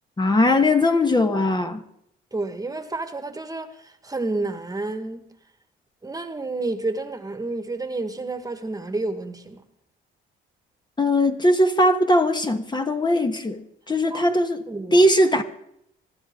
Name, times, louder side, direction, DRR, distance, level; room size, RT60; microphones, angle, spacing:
voice 1, 0.2-1.8 11.0-13.6 13.9-14.6 14.9-15.4, left 1 dB, 20° left, 1.4 m, -19 dB
voice 2, 2.3-5.3 6.0-9.6 14.1-14.4 14.7-15.0, right 2 dB, 20° right, 1.6 m, -30 dB
24.5 x 12.0 x 3.8 m
cardioid pair, 90°, 20 cm